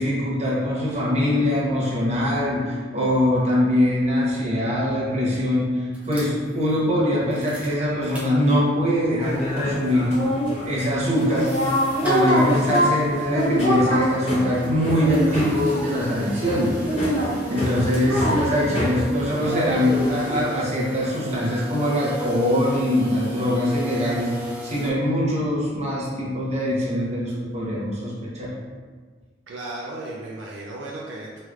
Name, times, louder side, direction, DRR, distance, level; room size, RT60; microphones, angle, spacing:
voice 1, 0.0-10.1 10.6-11.5 12.0-16.7 17.5-28.5, left 1 dB, 40° right, -6 dB, 0.8 m, -22 dB
sound 1, 5.9-8.9 9.3-9.4 9.6-24.9, left 1 dB, 10° right, 0.6 m, -38 dB
sound 2, 9.2-20.4, equal, 35° left, 1.1 m, -25 dB
voice 2, 29.5-31.4, right 2 dB, 75° right, -3 dB, 0.4 m, -35 dB
3.1 x 3.1 x 2.4 m, 1.5 s
head